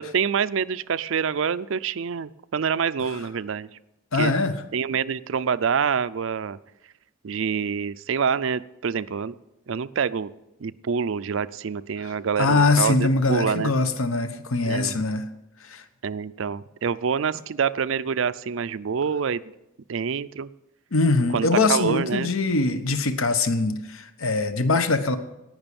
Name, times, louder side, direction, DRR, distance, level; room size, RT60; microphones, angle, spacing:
voice 1, 0.0-3.7 4.2-4.3 4.7-6.6 7.2-9.3 9.7-10.3 10.6-13.7 14.7-15.0 16.0-19.5 19.9-20.5 21.3-22.3, right 6 dB, 65° right, 15 dB, 0.4 m, -26 dB
voice 2, 4.1-4.6 12.0-15.3 15.7-15.8 20.9-25.2, left 3 dB, 75° left, 10 dB, 1.0 m, -22 dB
18.0 x 6.2 x 6.9 m, 0.94 s
head